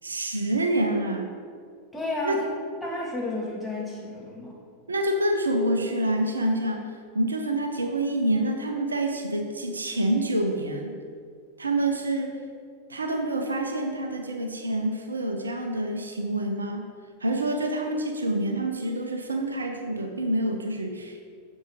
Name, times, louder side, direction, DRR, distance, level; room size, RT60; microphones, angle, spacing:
voice 1, 0.0-1.3 2.2-2.4 4.9-10.9 11.6-12.4 12.9-16.8 17.2-21.3, right 1 dB, 75° right, 4 dB, 0.8 m, -27 dB
voice 2, 1.9-2.4 2.8-4.6, left 2 dB, 5° left, -4 dB, 2.3 m, -32 dB
7.3 x 7.1 x 4.9 m, 2.2 s
figure-of-eight pair, 90°, 0 cm